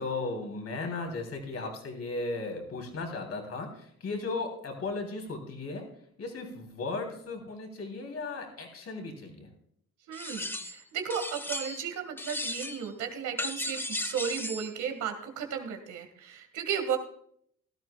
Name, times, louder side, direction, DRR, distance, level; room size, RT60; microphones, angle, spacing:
voice 1, 0.0-5.9 6.2-9.5, left 3 dB, 55° left, 3 dB, 3.4 m, -36 dB
sound 1, 10.1-10.8 11.1-11.9 12.2-12.9 13.4-14.7, left 1 dB, 5° left, 0.8 m, -35 dB
voice 2, 10.1-17.0, right 7 dB, 80° right, 5 dB, 2.0 m, -34 dB
16.5 x 12.5 x 2.4 m, 0.66 s
cardioid pair, 90°, 30 cm